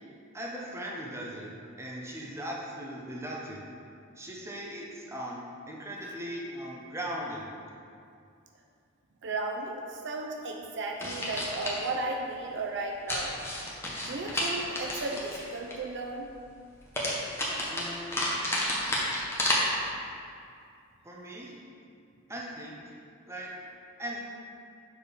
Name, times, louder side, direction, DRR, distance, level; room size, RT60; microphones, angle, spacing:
voice 1, 0.3-1.5 1.8-3.7 4.2-5.4 5.7-7.5 17.7-18.3 21.0-21.6 22.3-22.9 23.3-23.5 24.0-24.2, equal, 15° right, -3 dB, 0.9 m, -38 dB
voice 2, 9.2-13.4 14.1-16.3, right 2 dB, 60° right, 1 dB, 0.6 m, -35 dB
sound 1, 11.0-11.8 13.1-15.7 16.9-19.6, left 1 dB, 10° left, 1.0 m, -31 dB
6.8 x 4.4 x 5.1 m, 2.4 s
head